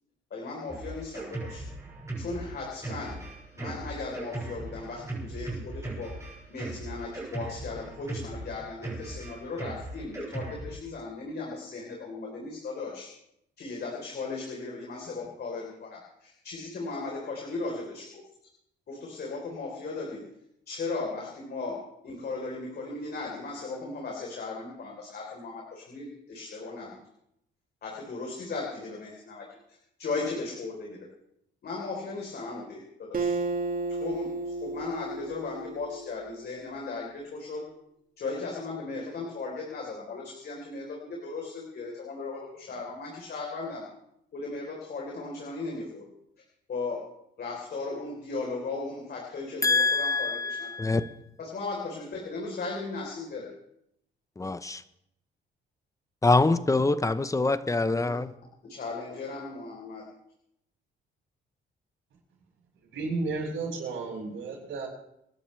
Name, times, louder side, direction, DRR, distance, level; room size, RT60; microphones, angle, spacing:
voice 1, 0.3-1.7 2.2-3.2 3.5-6.2 6.5-13.1 13.6-18.2 18.9-20.2 20.7-21.8 22.0-27.0 27.8-31.1 31.6-33.4 33.9-37.6 38.2-43.9 44.3-46.0 46.7-47.0 47.4-50.9 51.4-53.5 58.0-58.2 58.6-60.0, left 3 dB, 55° left, -1 dB, 3.8 m, -37 dB
Drum kit, 0.7-10.8, right 2 dB, 15° right, 6.6 m, -38 dB
Acoustic guitar, 33.1-36.6, right 3 dB, 45° right, 2.0 m, -33 dB
voice 2, 49.6-51.1 54.4-54.8 56.2-58.3, left 3 dB, 15° left, 13 dB, 0.8 m, -25 dB
voice 3, 62.9-64.9, right 3 dB, 75° right, -3 dB, 7.1 m, -32 dB
27.5 x 11.5 x 3.3 m, 0.78 s
cardioid pair, 90°, 20 cm